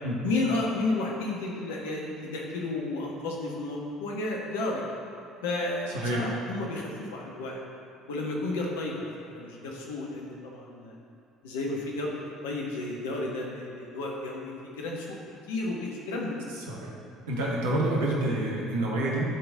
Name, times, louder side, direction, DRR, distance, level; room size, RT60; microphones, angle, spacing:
voice 1, 0.2-4.9 5.4-7.6 8.1-11.0 11.4-15.2 15.5-16.4, left 2 dB, 75° left, -2 dB, 1.3 m, -32 dB
voice 2, 17.3-19.2, right 1 dB, 75° right, -3 dB, 1.3 m, -28 dB
11.5 x 4.0 x 4.0 m, 2.7 s
figure-of-eight pair, 60°, 0 cm